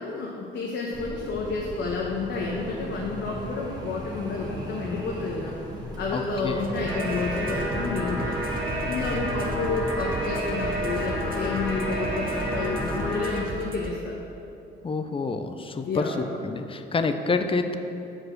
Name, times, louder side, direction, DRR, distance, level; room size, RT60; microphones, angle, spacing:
voice 1, 0.0-5.5 6.0-8.4 8.9-14.2 15.9-16.2, left 3 dB, 65° left, -2 dB, 1.0 m, -30 dB
sound 1, 0.9-13.1, equal, 20° right, 1.6 m, -36 dB
voice 2, 6.1-6.6 8.9-9.2 14.8-17.8, left 4 dB, 25° left, 8 dB, 0.5 m, -28 dB
sound 2, 6.6-13.9, right 4 dB, 45° right, 0.7 m, -37 dB
sound 3, 6.9-13.4, equal, 5° left, 1.8 m, -31 dB
6.3 x 4.8 x 6.6 m, 2.8 s
cardioid pair, 90°, 20 cm